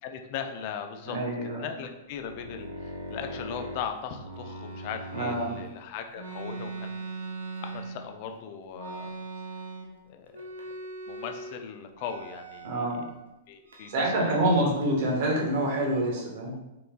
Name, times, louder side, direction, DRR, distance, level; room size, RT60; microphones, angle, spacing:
voice 1, 0.0-7.1 7.6-9.1 10.1-10.4 11.1-13.0 13.5-14.7 16.5-16.6, left 7 dB, 50° left, 6 dB, 0.4 m, -39 dB
voice 2, 1.1-1.7 5.1-5.6 12.6-13.0 13.9-16.5, right 1 dB, 55° right, -1 dB, 0.9 m, -26 dB
sound 1, 2.1-5.7 6.1-8.3 8.7-10.0 10.3-11.6 12.0-13.1 13.7-14.6 14.8-16.0, right 2 dB, 80° right, 0.5 m, -40 dB
3.3 x 3.0 x 2.2 m, 0.96 s
hypercardioid pair, 110°, 0 cm